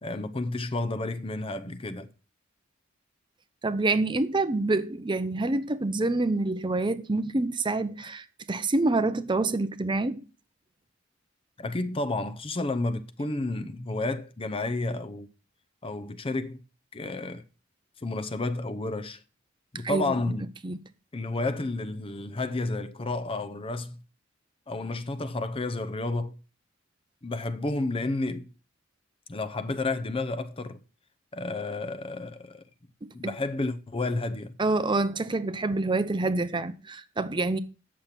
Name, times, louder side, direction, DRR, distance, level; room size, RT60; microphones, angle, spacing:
voice 1, 0.0-2.1 11.6-15.3 15.8-16.6 16.9-17.4 18.0-19.2 19.7-20.4 21.1-24.0 24.7-26.4 27.2-28.5 29.3-30.8 31.3-32.6 33.1-34.5, left 2 dB, 30° left, 0.7 m, -31 dB
voice 2, 3.6-10.3 19.8-20.1 20.6-20.8 33.0-33.1 34.6-37.6, right 2 dB, 25° right, 0.6 m, -27 dB
8.9 x 6.6 x 5.8 m
head